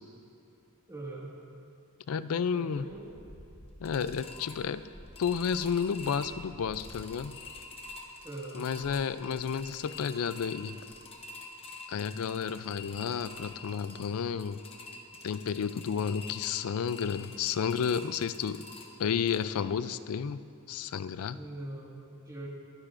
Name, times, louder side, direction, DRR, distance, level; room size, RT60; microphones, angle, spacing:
voice 1, 0.9-1.3 2.5-3.1 8.2-8.7 21.3-22.5, right 2 dB, 15° right, -4 dB, 1.8 m, -42 dB
voice 2, 2.1-2.9 3.8-4.8 5.2-7.4 8.5-10.8 11.9-14.6 15.2-18.6 19.0-20.4 20.7-21.4, left 7 dB, 75° left, 14 dB, 0.4 m, -31 dB
sound 1, 2.7-19.4, left 3 dB, 25° left, 0.9 m, -47 dB
23.0 x 10.0 x 2.5 m, 2.6 s
head